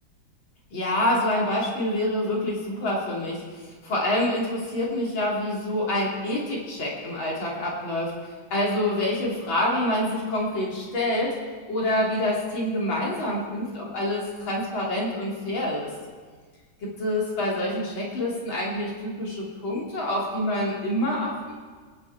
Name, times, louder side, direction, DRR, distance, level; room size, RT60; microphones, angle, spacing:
voice 1, 0.7-8.1 8.5-11.4 11.7-15.9 17.0-21.5, left 1 dB, 80° left, -4 dB, 3.8 m, -27 dB
25.5 x 10.0 x 4.6 m, 1.6 s
omnidirectional pair, 2.1 m